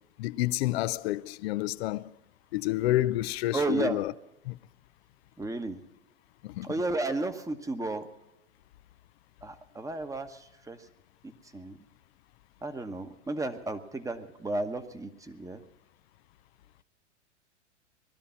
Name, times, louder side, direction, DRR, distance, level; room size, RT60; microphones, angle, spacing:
voice 1, 0.2-2.1 2.5-4.1 4.4-4.6 6.4-6.7, left 16 dB, 60° left, 0.6 m, -29 dB
voice 2, 3.5-4.0 5.4-5.8 6.6-8.1 9.4-10.9 11.2-11.8 12.6-15.6, right 2 dB, 10° right, 1.2 m, -33 dB
20.0 x 12.5 x 5.7 m
hypercardioid pair, 100°, 36 cm